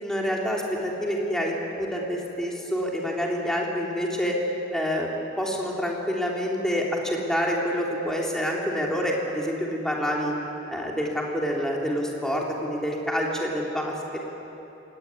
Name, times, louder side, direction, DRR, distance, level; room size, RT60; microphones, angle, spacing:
voice 1, 0.0-4.4 4.7-10.3 10.7-14.2, equal, 5° left, -2 dB, 3.5 m, -27 dB
26.0 x 18.5 x 9.6 m, 2.9 s
head